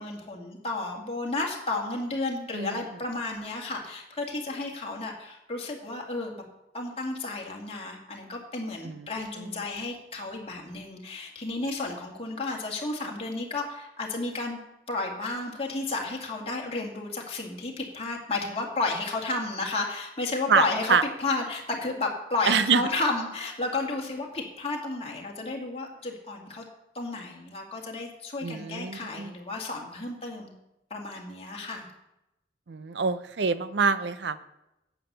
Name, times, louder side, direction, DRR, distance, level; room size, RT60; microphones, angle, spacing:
voice 1, 0.0-6.4 6.7-14.6 14.9-26.6 26.9-30.5 30.9-31.9, left 2 dB, 35° left, 0 dB, 2.1 m, -32 dB
voice 2, 2.5-2.8 8.8-9.1 9.4-9.5 20.5-21.0 22.4-22.8 28.4-29.3 32.7-34.4, right 5 dB, 75° right, 14 dB, 0.6 m, -26 dB
9.5 x 8.3 x 6.8 m, 0.90 s
head